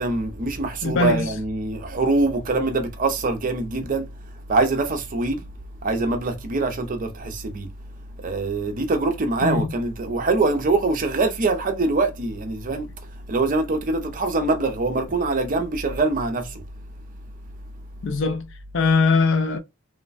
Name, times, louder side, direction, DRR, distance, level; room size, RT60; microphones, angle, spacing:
voice 1, 0.0-4.1 4.3-5.4 5.8-7.7 8.2-16.6, right 3 dB, 40° right, 0.5 m, -24 dB
voice 2, 0.8-1.3 9.4-9.7 18.0-19.6, left 4 dB, 60° left, 0.5 m, -21 dB
3.1 x 2.1 x 2.4 m
head